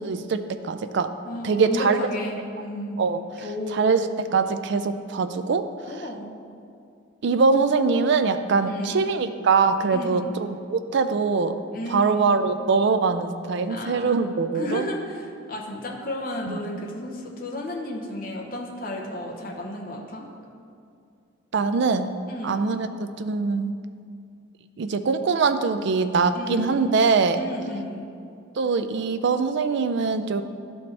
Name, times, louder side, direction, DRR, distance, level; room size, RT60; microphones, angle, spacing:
voice 1, 0.0-1.1 1.4-2.0 3.0-3.2 3.7-5.6 7.2-11.6 11.9-14.9 16.5-16.6 21.5-22.1 22.4-23.7 24.8-27.4 28.6-30.4, right 4 dB, 55° right, 10 dB, 0.3 m, -23 dB
voice 2, 1.2-3.0 3.4-4.0 5.8-6.4 8.7-9.1 9.9-10.3 11.7-12.3 13.6-14.3 14.5-20.2 22.3-22.7 26.3-26.9 27.3-28.0, left 1 dB, 40° left, -1 dB, 0.8 m, -33 dB
11.5 x 4.2 x 3.3 m, 2.4 s
head